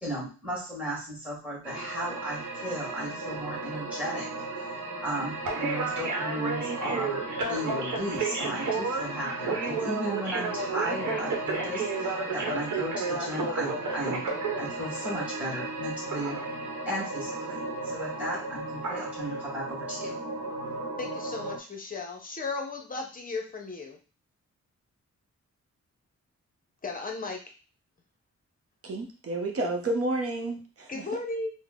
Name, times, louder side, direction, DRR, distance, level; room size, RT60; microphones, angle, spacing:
voice 1, 0.0-4.3 5.0-14.2 14.6-16.4 16.8-20.1, equal, 5° right, -5 dB, 1.6 m, -35 dB
sound 1, 1.6-21.6, right 3 dB, 80° right, 0.9 m, -32 dB
voice 2, 21.0-24.0 26.8-27.4 30.9-31.5, left 3 dB, 30° left, 2 dB, 0.7 m, -35 dB
voice 3, 28.8-31.0, right 2 dB, 50° right, 3 dB, 0.8 m, -30 dB
3.7 x 2.1 x 3.6 m, 0.35 s
wide cardioid pair, 175°, 29 cm